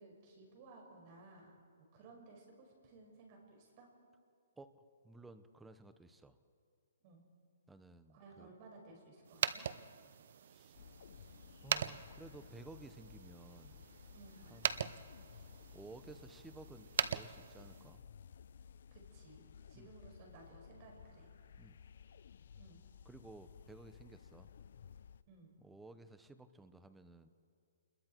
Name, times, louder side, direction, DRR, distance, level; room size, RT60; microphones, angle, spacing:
voice 1, 0.0-1.6 1.9-3.9 7.0-7.3 8.1-9.7 14.1-14.6 18.9-19.4 19.7-21.3 22.6-22.9 25.3-25.6, right 3 dB, 35° right, 0 dB, 5.8 m, -58 dB
voice 2, 4.6-6.4 7.7-8.5 10.4-10.8 11.6-13.9 14.5-15.0 15.3-15.5 15.7-18.0 19.7-19.9 21.6-21.8 23.0-24.5 25.6-27.3, right 2 dB, 5° right, 11 dB, 0.9 m, -56 dB
sound 1, 9.3-18.0, right 8 dB, 55° right, 0.7 m, -42 dB
sound 2, 10.7-25.2, left 7 dB, 65° left, 0.6 m, -57 dB
29.0 x 21.5 x 4.6 m, 2.4 s
hypercardioid pair, 155°, 0 cm